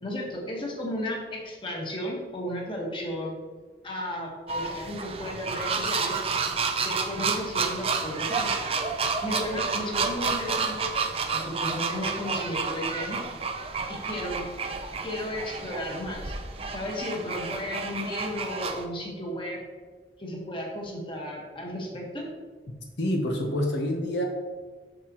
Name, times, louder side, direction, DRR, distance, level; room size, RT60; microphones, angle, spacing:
voice 1, 0.0-3.3 3.8-6.2 6.8-8.5 9.2-10.9 11.3-13.2 13.9-14.4 15.0-16.3 16.7-19.6 20.2-22.3, left 1 dB, 25° left, -2 dB, 1.4 m, -34 dB
sound 1, 4.5-18.9, right 4 dB, 30° right, 0.5 m, -30 dB
voice 2, 23.0-24.2, left 1 dB, 75° left, 1 dB, 0.9 m, -27 dB
7.8 x 6.6 x 3.0 m, 1.4 s
head